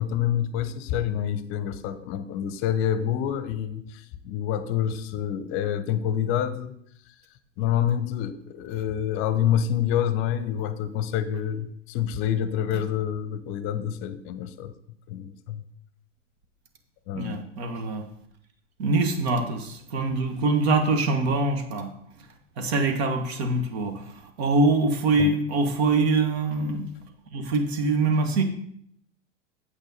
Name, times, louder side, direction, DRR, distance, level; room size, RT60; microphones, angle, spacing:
voice 1, 0.0-6.7 7.1-7.2 7.6-14.7 15.1-15.6 17.1-17.4 25.2-25.3, left 9 dB, 35° left, 13 dB, 0.8 m, -27 dB
voice 2, 17.1-18.0 18.8-21.9 22.6-26.9 27.3-28.4, right 3 dB, 55° right, 6 dB, 1.7 m, -24 dB
8.9 x 8.0 x 4.1 m, 0.69 s
figure-of-eight pair, 95°, 38 cm